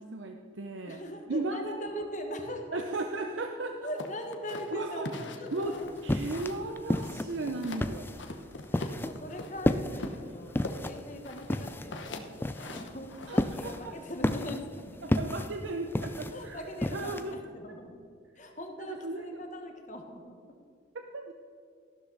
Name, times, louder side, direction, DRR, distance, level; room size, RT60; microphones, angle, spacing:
voice 1, 0.0-1.0 1.3-1.8 2.7-3.7 4.7-5.1 5.5-5.7 6.0-8.1 13.3-13.9 15.0-16.6 16.9-17.5 18.9-19.3 21.1-21.3, right 2 dB, 75° right, 4 dB, 0.8 m, -35 dB
voice 2, 0.9-2.8 3.8-6.0 8.3-8.4 8.7-10.5 10.8-15.2 16.3-18.0 18.4-20.4, equal, 40° left, 4 dB, 1.3 m, -41 dB
sound 1, 4.0-6.7 6.9-7.9 8.2-9.5 10.0-13.8, left 2 dB, 70° left, 1.1 m, -42 dB
sound 2, 5.7-17.3, left 1 dB, 10° left, 0.3 m, -32 dB
14.0 x 12.0 x 4.0 m, 2.3 s
head